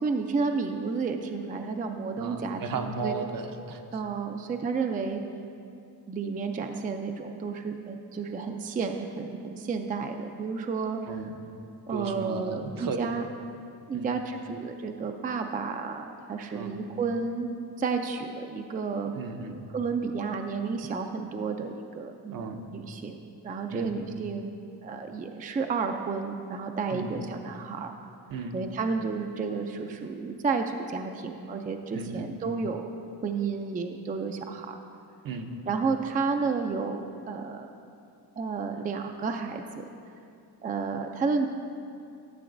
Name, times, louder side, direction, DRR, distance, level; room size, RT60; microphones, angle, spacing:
voice 1, 0.0-3.1 3.9-5.2 6.1-11.0 11.9-13.2 13.9-17.5 17.8-19.1 19.7-22.4 22.7-23.2 23.4-24.5 24.8-27.9 28.5-32.8 33.2-34.8 35.7-37.7 38.4-39.9 40.6-41.5, right 4 dB, 25° right, 5 dB, 0.3 m, -31 dB
voice 2, 2.2-3.8 11.1-11.3 11.9-13.1 13.9-14.1 16.5-16.8 19.1-19.6 22.3-22.6 23.7-23.9 26.9-27.1 28.3-28.6 31.9-32.3 35.2-35.5, right 4 dB, 60° right, 5 dB, 0.7 m, -35 dB
12.5 x 6.9 x 2.6 m, 2.5 s
cardioid pair, 105°, 39 cm